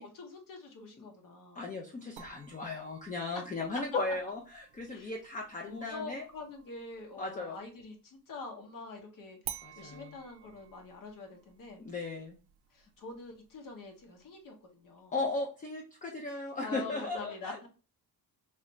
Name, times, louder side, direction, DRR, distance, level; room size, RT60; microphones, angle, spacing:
voice 1, 0.0-1.7 3.9-4.2 4.9-5.2 5.6-11.8 12.7-15.2 16.6-17.7, left 3 dB, 55° left, 3 dB, 0.9 m, -45 dB
voice 2, 1.6-4.4 4.8-6.2 7.2-7.6 9.6-10.1 11.8-12.4 15.1-17.7, left 3 dB, 20° left, 1 dB, 0.4 m, -36 dB
sound 1, 2.2-7.8 9.4-14.4, right 11 dB, 75° right, 0.5 m, -51 dB
3.2 x 2.5 x 3.0 m, 0.35 s
wide cardioid pair, 155°, 39 cm